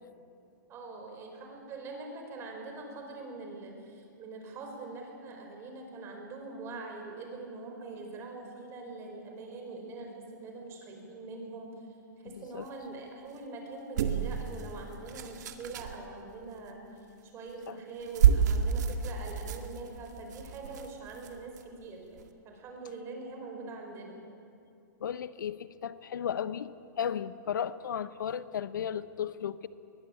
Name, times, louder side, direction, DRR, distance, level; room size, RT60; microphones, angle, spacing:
voice 1, 0.7-11.7 12.2-16.9 17.2-22.2 22.4-24.2, right 3 dB, 25° right, 2 dB, 5.0 m, -43 dB
voice 2, 12.3-12.7 17.7-17.8 25.0-29.7, left 8 dB, 80° left, 15 dB, 0.9 m, -35 dB
sound 1, 14.0-16.0 17.5-17.7 18.0-21.6 22.2-22.3, right 8 dB, 65° right, 2.0 m, -29 dB
21.5 x 20.0 x 8.7 m, 2.5 s
hypercardioid pair, 145°, 10 cm